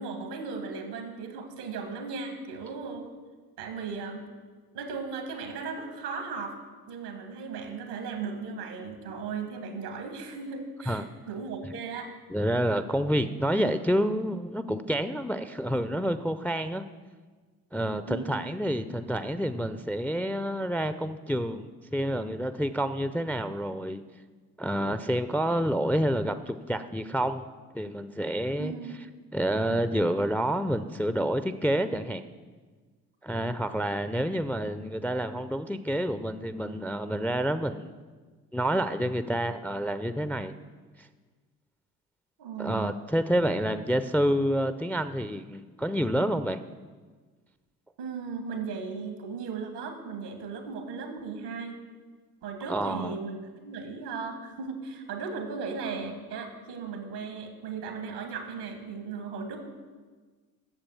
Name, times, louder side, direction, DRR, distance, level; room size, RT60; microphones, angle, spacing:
voice 1, 0.0-3.1 3.6-4.2 4.7-6.6 6.9-12.1 18.1-18.3 28.6-28.9 42.4-42.9 48.0-51.8 52.4-59.6, right 5 dB, 85° right, 6 dB, 1.5 m, -36 dB
voice 2, 12.3-16.8 17.7-24.0 24.6-27.5 27.7-28.7 29.3-32.2 33.2-37.9 38.5-40.5 42.6-46.6 52.7-53.2, equal, 5° left, 12 dB, 0.4 m, -28 dB
8.9 x 7.0 x 7.0 m, 1.4 s
hypercardioid pair, 45°, 47 cm